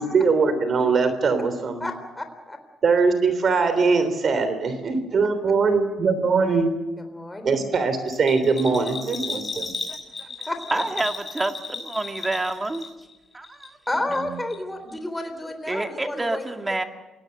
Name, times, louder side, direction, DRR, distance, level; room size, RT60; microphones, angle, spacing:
voice 1, 0.0-1.9 2.8-6.7 7.4-9.7, right 4 dB, 50° right, 10 dB, 3.3 m, -21 dB
voice 2, 1.8-2.6 7.0-7.7 10.5-10.8 13.9-16.5, left 1 dB, 10° left, 6 dB, 3.9 m, -31 dB
Bell, 8.1-13.2 13.4-14.2 14.5-14.6, left 4 dB, 35° left, 6.7 m, -34 dB
voice 3, 10.4-12.9 13.3-13.7 15.7-16.8, right 2 dB, 20° right, 6 dB, 2.2 m, -28 dB
28.0 x 18.0 x 7.8 m, 1.1 s
cardioid pair, 90°, 0 cm